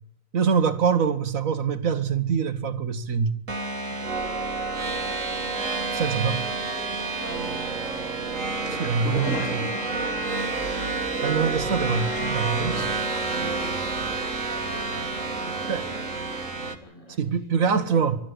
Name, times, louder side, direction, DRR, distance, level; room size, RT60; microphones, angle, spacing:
voice 1, 0.3-3.4 5.9-6.4 8.7-9.7 11.2-13.0 15.7-15.9 17.2-18.2, right 6 dB, 90° right, 1.8 m, -24 dB
sound 1, 3.5-16.8, right 3 dB, 70° right, 2.1 m, -29 dB
voice 2, 4.8-5.2 6.0-8.3 8.9-11.8 13.5-18.1, left 1 dB, 25° left, 6.2 m, -46 dB
sound 2, 8.3-10.4 11.4-12.3 12.7-13.2 13.4-13.5 13.9-14.0, left 2 dB, 65° left, 4.2 m, -36 dB
25.0 x 12.5 x 9.9 m
omnidirectional pair, 1.4 m